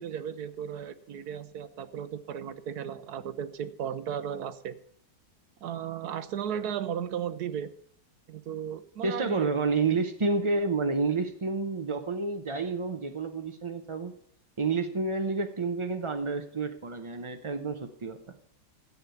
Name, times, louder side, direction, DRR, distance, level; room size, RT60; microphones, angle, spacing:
voice 1, 0.0-4.8 5.6-7.7 8.3-9.5, right 9 dB, 70° right, 13 dB, 1.2 m, -35 dB
voice 2, 9.0-14.1 14.6-18.2, right 4 dB, 45° right, 6 dB, 0.4 m, -29 dB
13.0 x 8.2 x 7.0 m, 0.67 s
omnidirectional pair, 1.8 m